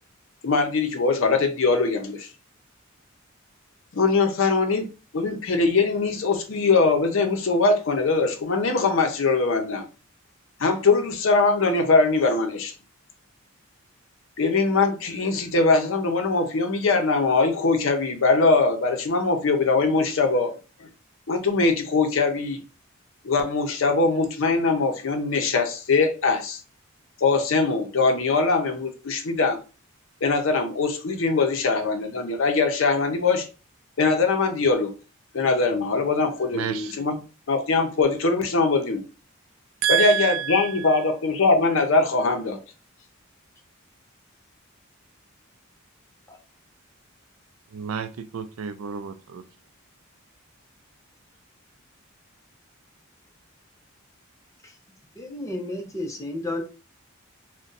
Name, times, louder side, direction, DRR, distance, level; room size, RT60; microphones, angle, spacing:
voice 1, 0.4-2.3 3.9-4.9 5.1-9.9 10.6-12.7 14.4-20.5 21.3-22.6 23.2-26.6 27.2-29.6 30.2-33.5 34.0-34.9 35.3-37.2 37.5-39.0 39.9-42.6, left 3 dB, 65° left, 0.6 m, -22 dB
voice 2, 36.5-37.1 39.8-41.0 47.7-49.4, right 10 dB, 70° right, 0.3 m, -28 dB
voice 3, 55.2-56.6, left 1 dB, 15° left, 0.6 m, -32 dB
2.6 x 2.2 x 3.8 m
head